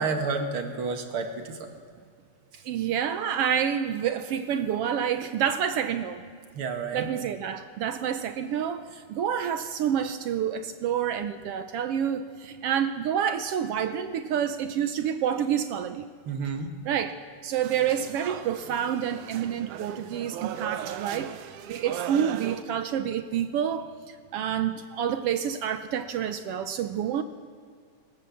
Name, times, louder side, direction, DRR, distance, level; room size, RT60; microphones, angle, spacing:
voice 1, 0.0-1.7 2.5-2.6 6.5-7.1 16.3-16.7, right 4 dB, 50° right, 5 dB, 2.3 m, -30 dB
voice 2, 2.6-6.2 6.9-16.1 16.8-17.2 17.4-21.3 21.7-27.2, right 9 dB, 70° right, 10 dB, 1.5 m, -28 dB
sound 1, 17.6-22.6, right 11 dB, 90° right, 2.3 m, -38 dB
20.0 x 19.5 x 7.1 m, 2.2 s
omnidirectional pair, 3.4 m